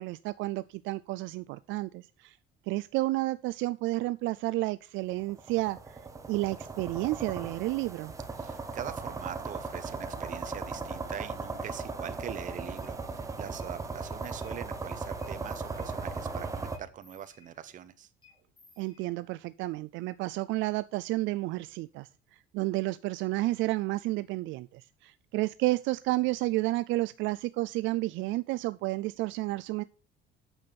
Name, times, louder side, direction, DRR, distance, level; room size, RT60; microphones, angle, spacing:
voice 1, 0.0-2.4 2.7-6.0 6.3-8.1 18.8-29.8, right 19 dB, 70° right, 0.4 m, -31 dB
sound 1, 5.2-16.8, right 3 dB, 15° right, 1.1 m, -37 dB
voice 2, 8.4-18.1, right 10 dB, 40° right, 0.9 m, -43 dB
sound 2, 12.8-12.9 13.5-13.7 14.0-14.8 15.2-16.2 16.7-17.9 18.2-19.5, left 3 dB, 25° left, 3.4 m, -61 dB
8.8 x 6.9 x 5.9 m
cardioid pair, 160°, 21 cm